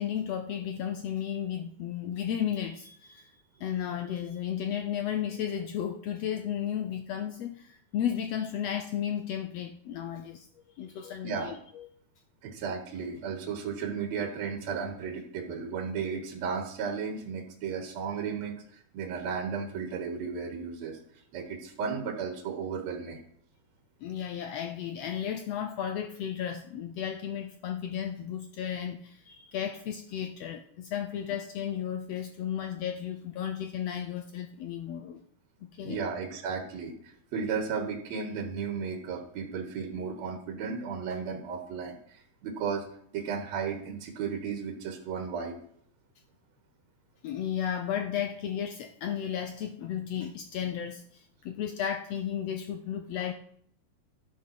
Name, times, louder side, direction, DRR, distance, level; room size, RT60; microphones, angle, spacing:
voice 1, 0.0-3.3 3.6-10.5 10.8-11.9 24.0-35.2 35.7-36.0 47.2-53.3, left 9 dB, 85° left, 7 dB, 1.4 m, -34 dB
voice 2, 12.4-21.0 21.3-23.2 35.8-42.9 43.1-45.6, right 6 dB, 65° right, 4 dB, 2.3 m, -34 dB
12.5 x 7.6 x 5.8 m, 0.65 s
omnidirectional pair, 3.7 m